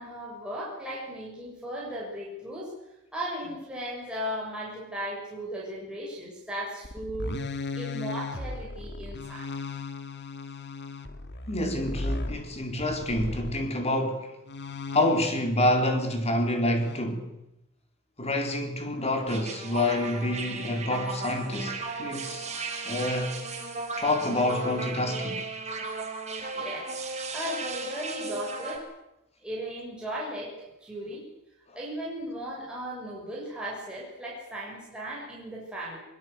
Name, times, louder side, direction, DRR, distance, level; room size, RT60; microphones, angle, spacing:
voice 1, 0.0-2.7 3.1-7.4 7.7-9.5 26.5-26.9 27.3-28.8 29.4-31.2 31.7-36.0, equal, 5° right, 6.7 m, -36 dB
sound 1, 6.8-13.7 14.5-15.5 16.8-17.0, left 3 dB, 55° left, 2.1 m, -36 dB
voice 2, 11.5-14.3 14.9-17.3 18.2-22.5 22.8-23.3 24.0-25.4, left 1 dB, 30° left, 4.2 m, -27 dB
sound 2, 19.3-28.8, right 4 dB, 30° right, 4.9 m, -35 dB
22.5 x 22.5 x 8.3 m
head